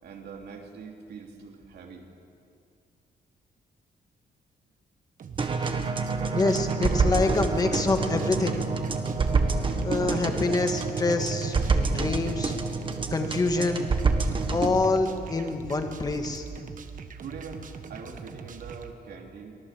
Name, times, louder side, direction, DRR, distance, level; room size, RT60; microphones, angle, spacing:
voice 1, 0.0-2.1 17.2-19.6, right 5 dB, 80° right, 1 dB, 3.1 m, -43 dB
sound 1, 5.2-18.9, right 6 dB, 55° right, 1.3 m, -42 dB
Drumloop with gong, 5.4-14.8, right 4 dB, 30° right, 1.4 m, -27 dB
voice 2, 6.3-8.6 9.8-12.5 13.1-13.9 14.5-16.4, left 3 dB, 25° left, 5 dB, 1.7 m, -26 dB
23.5 x 18.5 x 7.6 m, 2.4 s
wide cardioid pair, 175°, 17 cm